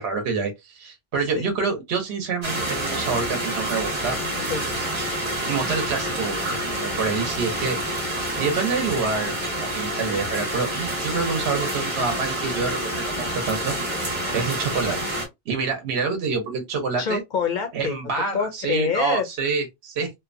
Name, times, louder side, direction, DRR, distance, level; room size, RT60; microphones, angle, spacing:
voice 1, 0.0-4.2 5.4-6.4 6.8-7.8 8.4-9.3 9.6-15.0 15.5-17.2 17.7-20.1, right 4 dB, 65° right, 1.0 m, -27 dB
sound 1, 2.4-15.3, right 1 dB, 25° right, 0.9 m, -28 dB
voice 2, 4.2-4.7 17.0-18.0 18.3-19.3, left 6 dB, 60° left, 0.5 m, -26 dB
2.7 x 2.1 x 2.4 m
omnidirectional pair, 1.2 m